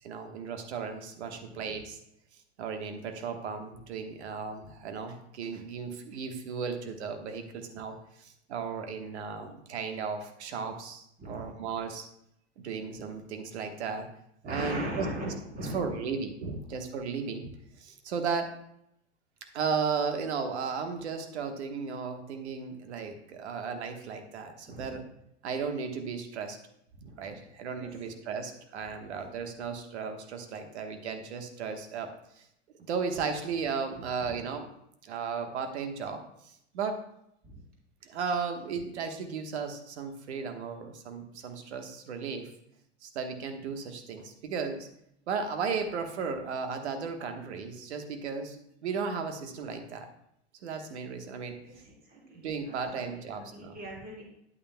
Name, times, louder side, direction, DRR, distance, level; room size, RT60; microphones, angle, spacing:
voice 1, 0.0-2.0 2.6-12.1 12.6-14.1 14.4-15.3 15.6-17.5 17.8-18.6 19.5-25.0 25.4-26.6 27.0-32.4 32.9-34.7 35.0-37.0 38.0-42.5 43.0-44.9 45.3-50.1 50.6-51.6 52.3-53.8, right 5 dB, 75° right, 6 dB, 1.3 m, -35 dB
voice 2, 1.2-1.8 11.2-11.5 14.4-16.1 16.4-16.6 24.7-25.0 27.0-27.4 27.8-28.1 34.0-34.4 37.4-37.7 51.6-54.2, right 1 dB, 25° right, -3 dB, 3.3 m, -40 dB
9.7 x 8.6 x 2.2 m, 0.77 s
hypercardioid pair, 100°, 34 cm